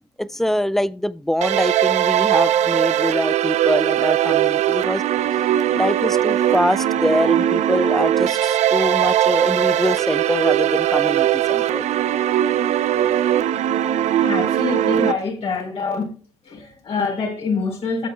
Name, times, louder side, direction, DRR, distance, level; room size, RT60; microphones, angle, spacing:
voice 1, 0.2-5.0 5.7-11.9, left 1 dB, 5° left, 0.4 m, -24 dB
sound 1, 1.4-15.1, right 11 dB, 60° right, 0.7 m, -20 dB
voice 2, 14.2-16.1 16.4-18.1, left 4 dB, 50° left, 4.2 m, -25 dB
16.5 x 7.3 x 2.3 m
cardioid pair, 110°, 13 cm